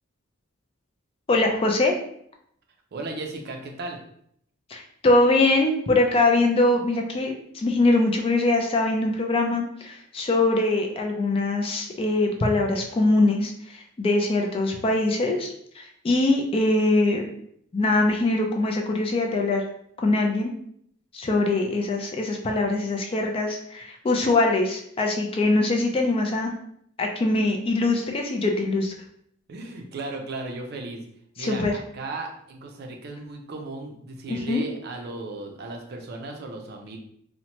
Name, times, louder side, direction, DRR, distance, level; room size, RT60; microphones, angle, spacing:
voice 1, 1.3-1.9 4.7-17.3 17.7-19.6 20.0-20.5 21.1-26.5 27.0-28.9 31.4-31.7 34.3-34.6, left 2 dB, 25° left, 2 dB, 0.3 m, -23 dB
voice 2, 2.9-4.0 29.5-31.0 31.4-37.0, right 2 dB, 50° right, 2 dB, 0.5 m, -36 dB
2.7 x 2.1 x 2.9 m, 0.68 s
head